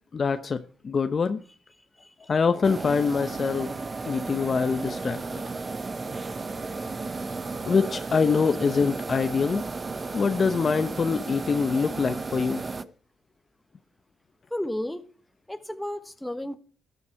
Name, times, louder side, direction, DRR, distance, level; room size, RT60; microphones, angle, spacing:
voice 1, 0.1-1.4 2.3-3.7 4.1-5.4 6.7-6.8 7.7-9.6 10.1-12.6, left 5 dB, 40° left, 0.8 m, -25 dB
voice 2, 1.8-2.3 14.5-15.0 15.5-16.6, left 1 dB, 5° left, 1.2 m, -33 dB
sound 1, 2.6-12.8, right 3 dB, 30° right, 0.8 m, -34 dB
13.5 x 10.5 x 4.6 m
cardioid pair, 90°, 0 cm